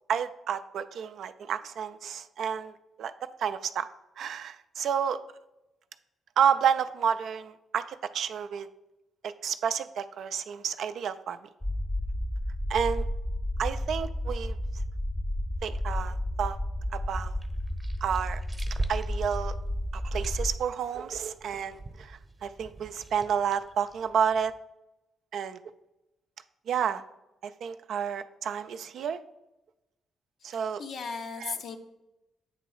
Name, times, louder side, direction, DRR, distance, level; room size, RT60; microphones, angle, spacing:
voice 1, 0.1-3.1 3.4-3.9 4.2-5.2 6.4-8.7 9.2-11.4 12.7-13.1 13.6-14.6 15.6-16.6 16.9-17.4 18.0-18.4 18.9-19.5 19.9-24.5 25.3-25.6 26.7-27.0 27.4-29.2 30.4-30.8 31.4-31.5, right 8 dB, 65° right, 11 dB, 0.3 m, -30 dB
sound 1, 11.6-20.6, left 1 dB, 15° left, 0.5 m, -32 dB
sound 2, 17.3-24.6, right 2 dB, 30° right, 0.8 m, -43 dB
voice 2, 30.5-31.8, left 5 dB, 60° left, 6 dB, 0.6 m, -37 dB
8.4 x 3.0 x 4.5 m, 0.95 s
hypercardioid pair, 40°, 0 cm